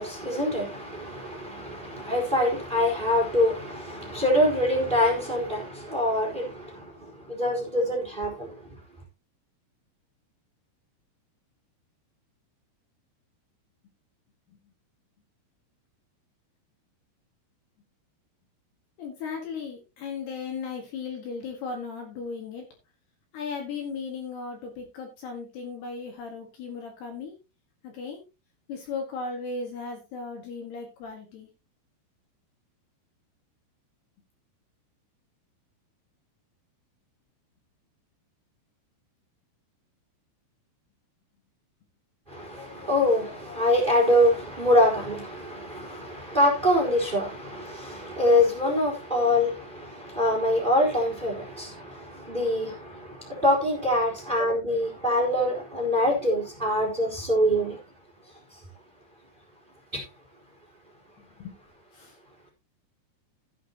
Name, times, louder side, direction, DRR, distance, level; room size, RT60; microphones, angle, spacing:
voice 1, 0.0-8.5 42.3-57.8 59.9-60.0, left 1 dB, 10° right, 3.5 m, -25 dB
voice 2, 19.0-22.7 23.3-27.4 27.8-28.2 28.7-31.5 61.2-61.6 61.9-62.2, left 5 dB, 60° left, 3.5 m, -36 dB
16.0 x 8.5 x 2.9 m
omnidirectional pair, 5.8 m